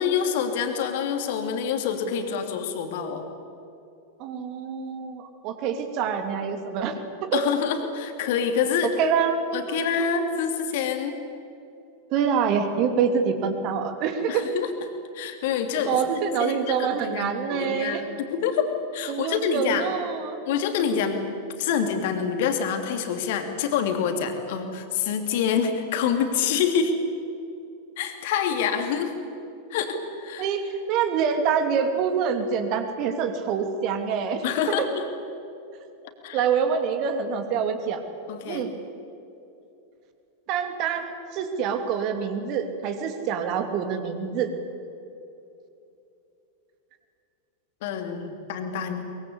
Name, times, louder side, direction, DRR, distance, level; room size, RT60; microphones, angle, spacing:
voice 1, 0.0-3.2 7.3-8.9 9.5-11.2 14.3-14.7 15.1-16.0 16.4-16.6 17.0-19.9 20.5-21.2 21.6-26.9 28.0-29.1 29.7-30.5 34.4-35.0 36.2-36.4 38.3-38.6 47.8-49.1, left 7 dB, 50° left, 5 dB, 3.0 m, -26 dB
voice 2, 4.2-7.0 7.3-7.4 8.8-10.0 12.1-14.5 15.9-18.0 19.1-20.4 30.4-34.4 36.3-38.0 38.5-38.7 40.5-44.5, right 6 dB, 40° right, 7 dB, 2.8 m, -26 dB
23.0 x 22.5 x 8.4 m, 2.7 s
figure-of-eight pair, 90°, 0 cm